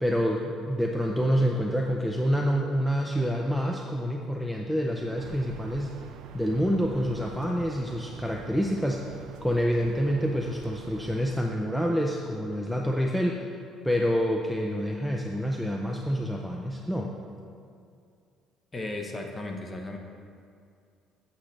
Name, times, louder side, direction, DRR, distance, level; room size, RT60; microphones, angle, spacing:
voice 1, 0.0-6.0 6.3-9.1 9.4-13.4 13.8-17.1, equal, ahead, 0 dB, 0.5 m, -27 dB
sound 1, 5.2-11.4, right 7 dB, 80° right, 0.4 m, -46 dB
voice 2, 18.7-20.0, left 2 dB, 20° left, 3 dB, 0.8 m, -35 dB
8.2 x 7.1 x 3.3 m, 2.4 s
cardioid pair, 125°, 0 cm